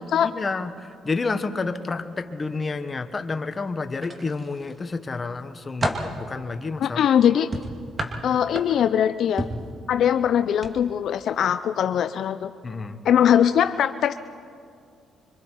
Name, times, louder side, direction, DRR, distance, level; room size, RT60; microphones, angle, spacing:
voice 1, 0.2-7.0 12.6-13.0, left 3 dB, 30° left, 9 dB, 1.2 m, -30 dB
sound 1, 4.0-4.8 5.3-6.2 7.5-9.0 9.4-9.7 10.5-10.7 11.1-11.3, right 1 dB, 30° right, 2.4 m, -30 dB
voice 2, 6.8-7.5 8.2-9.5 9.9-12.5 13.0-14.1, left 9 dB, 70° left, 10 dB, 0.5 m, -21 dB
26.5 x 24.5 x 4.6 m, 2.3 s
cardioid pair, 90°, 0 cm